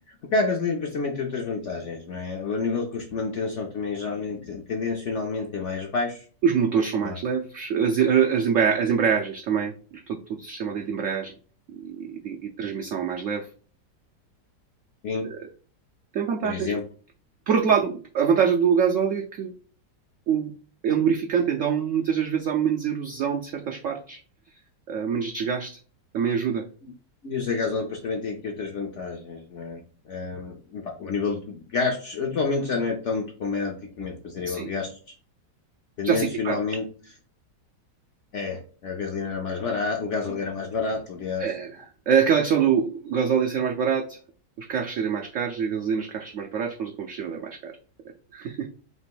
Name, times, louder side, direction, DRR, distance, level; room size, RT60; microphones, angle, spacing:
voice 1, 0.1-6.2 7.0-7.2 15.0-15.3 16.4-16.8 26.8-26.9 27.2-35.0 36.0-36.9 38.3-41.5, left 4 dB, 65° left, 1 dB, 0.7 m, -29 dB
voice 2, 6.4-11.4 11.7-13.5 15.2-15.4 16.1-16.7 17.5-19.5 20.3-20.5 20.8-24.2 24.9-25.8 26.1-26.6 34.5-34.7 36.0-36.6 41.4-44.2 44.6-47.8 48.3-48.7, right 7 dB, 80° right, 3 dB, 0.7 m, -25 dB
3.4 x 2.9 x 4.5 m, 0.40 s
omnidirectional pair, 1.9 m